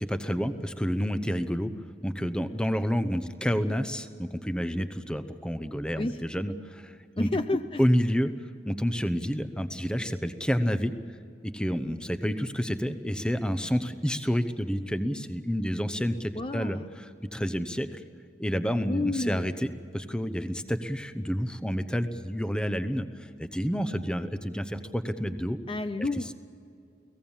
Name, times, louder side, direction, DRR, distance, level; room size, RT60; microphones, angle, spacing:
voice 1, 0.0-1.7 2.0-7.3 7.8-8.3 8.6-10.9 11.4-16.8 17.3-18.0 18.4-25.6 26.0-26.1, equal, 5° left, 10 dB, 0.8 m, -29 dB
voice 2, 7.2-7.8 16.4-16.9 18.8-19.5 25.7-26.3, left 2 dB, 30° left, 9 dB, 0.5 m, -30 dB
30.0 x 18.0 x 7.2 m, 2.5 s
head